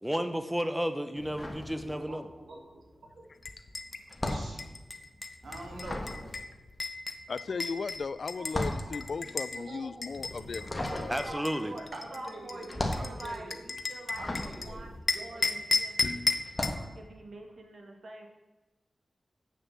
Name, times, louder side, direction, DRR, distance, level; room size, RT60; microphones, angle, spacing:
voice 1, 0.0-2.3 11.1-11.7, equal, 5° right, 9 dB, 0.6 m, -32 dB
sound 1, 1.2-2.4 2.7-15.8 16.4-16.9, left 1 dB, 20° left, 1.6 m, -37 dB
voice 2, 1.2-3.3 4.3-4.8 5.4-6.3 7.5-7.7 8.3-9.0 9.5-9.9 10.8-10.9 11.9-13.7 14.2-14.9 15.1-15.7, right 2 dB, 85° right, 1 dB, 2.1 m, -46 dB
sound 2, 3.4-9.6 10.0-14.7 15.1-16.8, left 3 dB, 45° left, 0.8 m, -34 dB
voice 3, 7.3-11.4, left 4 dB, 65° left, 16 dB, 0.4 m, -37 dB
voice 4, 10.9-11.9 12.1-14.9 15.3-16.4 16.9-18.3, right 2 dB, 60° right, 2 dB, 1.9 m, -45 dB
7.6 x 6.9 x 7.2 m, 1.1 s
wide cardioid pair, 110°, 0 cm